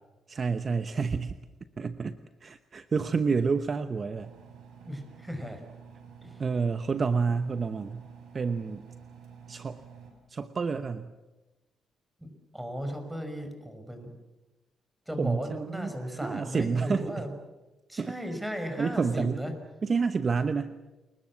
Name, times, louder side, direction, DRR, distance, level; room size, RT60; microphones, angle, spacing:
voice 1, 0.3-1.4 1.8-4.3 6.4-8.0 8.3-8.9 9.5-9.8 10.3-11.1 15.2-17.2 18.0-18.1 18.6-19.4 19.8-20.8, right 5 dB, 40° right, 11 dB, 1.0 m, -29 dB
Engine, 4.2-10.1, right 7 dB, 75° right, 6.4 m, -50 dB
voice 2, 4.8-5.6 6.2-6.3 12.2-14.1 15.1-17.3 17.9-19.5, equal, 5° right, 6 dB, 5.7 m, -36 dB
30.0 x 21.5 x 7.5 m, 1.1 s
cardioid pair, 90°, 0 cm